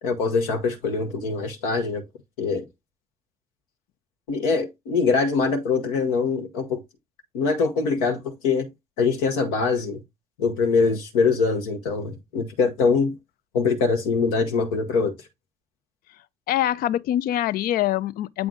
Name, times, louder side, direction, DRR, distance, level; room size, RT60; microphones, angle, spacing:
voice 1, 0.0-2.0 2.4-2.7 4.3-6.8 7.3-8.7 9.0-10.0 10.4-13.1 13.5-15.2, left 4 dB, 75° left, 1.0 m, -23 dB
voice 2, 16.5-18.5, left 13 dB, 55° left, 0.4 m, -24 dB
7.8 x 3.4 x 3.7 m
hypercardioid pair, 50°, 18 cm